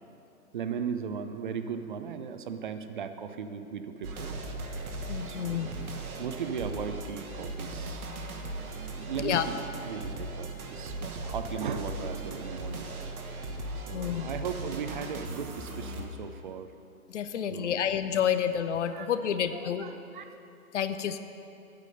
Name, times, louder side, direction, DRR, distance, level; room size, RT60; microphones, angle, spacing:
voice 1, 0.5-4.3 5.2-5.9 6.2-8.1 9.0-12.9 13.7-16.7 17.5-17.9 18.9-20.2, right 6 dB, 35° right, 9 dB, 0.5 m, -37 dB
sound 1, 4.0-16.1, right 2 dB, 70° right, 1.4 m, -38 dB
voice 2, 5.1-5.7 9.2-9.5 13.9-14.3 17.1-19.8 20.7-21.2, left 9 dB, 55° left, 10 dB, 0.6 m, -29 dB
8.4 x 7.5 x 6.6 m, 2.7 s
hypercardioid pair, 130°, 45 cm